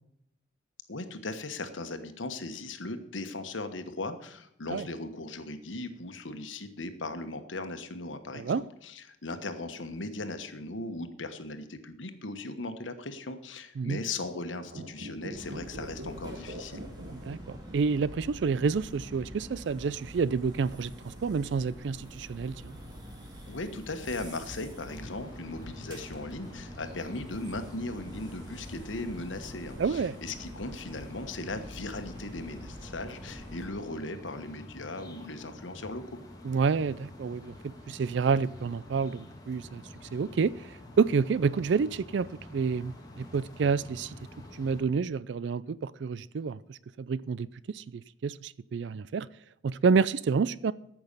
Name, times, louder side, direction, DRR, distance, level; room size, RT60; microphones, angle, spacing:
voice 1, 0.9-16.8 23.5-36.0, left 2 dB, 85° left, 1.3 m, -38 dB
sound 1, 14.6-18.1 18.3-18.4, right 1 dB, 85° right, 1.3 m, -42 dB
sound 2, 15.3-33.7, equal, 20° right, 2.6 m, -46 dB
voice 2, 17.1-22.8 29.8-30.1 36.4-39.8 40.1-44.1 44.5-49.3 49.6-50.7, right 5 dB, 65° right, 0.4 m, -29 dB
sound 3, 24.9-44.8, left 1 dB, 20° left, 1.7 m, -48 dB
14.0 x 6.1 x 6.7 m
head